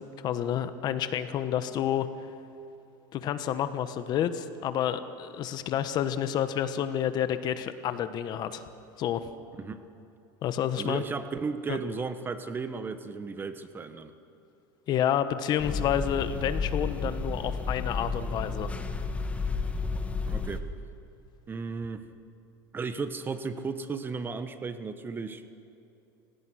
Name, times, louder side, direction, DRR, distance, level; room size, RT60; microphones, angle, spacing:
voice 1, 0.0-2.1 3.1-8.6 9.0-9.3 10.4-11.0 11.7-11.8 14.9-18.7, left 10 dB, 45° left, 11 dB, 1.2 m, -29 dB
voice 2, 10.8-14.1 20.3-20.7 21.5-22.1 22.7-25.4, right 4 dB, 20° right, 10 dB, 1.2 m, -35 dB
sound 1, 15.6-20.6, left 4 dB, 15° left, 1.5 m, -32 dB
29.5 x 17.0 x 6.4 m, 2.9 s
supercardioid pair, 130°, 10 cm